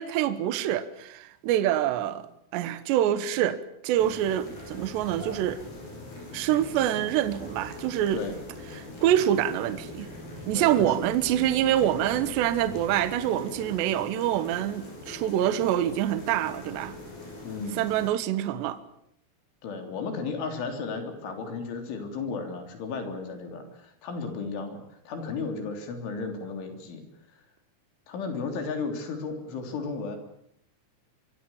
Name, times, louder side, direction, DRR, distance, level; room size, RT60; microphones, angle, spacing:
voice 1, 0.0-2.3 2.5-5.6 6.3-8.3 8.7-10.1 10.4-17.0 17.8-18.8, right 11 dB, 70° right, 3.0 m, -26 dB
sound 1, 4.0-18.1, left 2 dB, 45° left, 9.9 m, -42 dB
voice 2, 10.5-10.9 17.4-17.9 19.6-27.0 28.1-30.2, left 4 dB, 65° left, 5.6 m, -34 dB
25.0 x 23.0 x 7.2 m
omnidirectional pair, 6.0 m